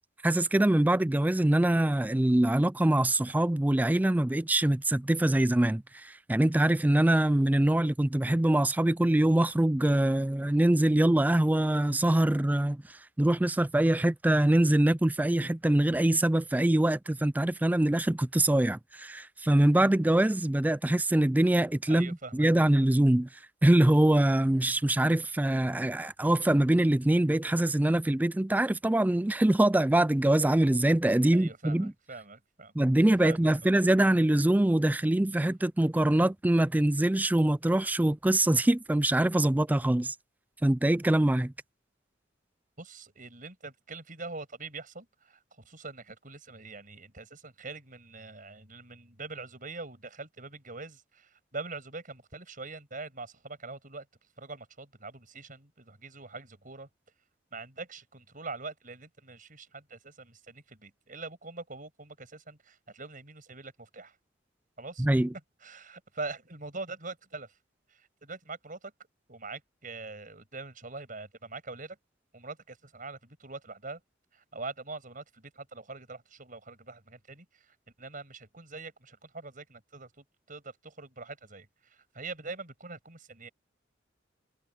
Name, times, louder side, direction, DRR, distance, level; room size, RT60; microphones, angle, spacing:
voice 1, 0.2-12.8 13.2-23.3 23.6-31.9 32.8-40.1 40.6-41.5 65.0-65.3, right 1 dB, 10° right, 0.3 m, -24 dB
voice 2, 21.9-22.5 31.3-32.7 33.2-33.7 42.8-54.0 54.4-56.9 57.5-64.1 64.8-65.1 65.6-67.5 67.9-68.9 69.3-72.0 72.3-74.0 74.3-80.1 80.5-83.5, right 3 dB, 45° right, 6.5 m, -43 dB
head